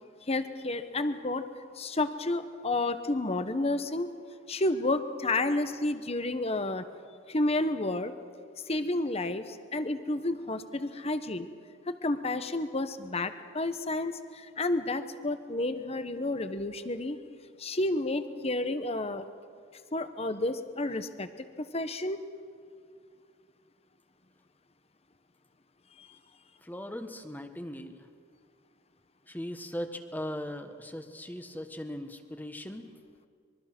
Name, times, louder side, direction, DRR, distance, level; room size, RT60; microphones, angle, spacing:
voice 1, 0.2-1.5 1.7-4.1 4.5-6.9 7.3-8.1 8.7-11.5 11.9-17.2 17.6-19.3 19.9-21.5 21.7-22.2 26.0-26.1, left 2 dB, 35° left, 10 dB, 1.1 m, -31 dB
voice 2, 26.6-28.0 29.3-32.9, equal, 10° left, 8 dB, 1.4 m, -39 dB
25.5 x 23.0 x 6.1 m, 2.2 s
head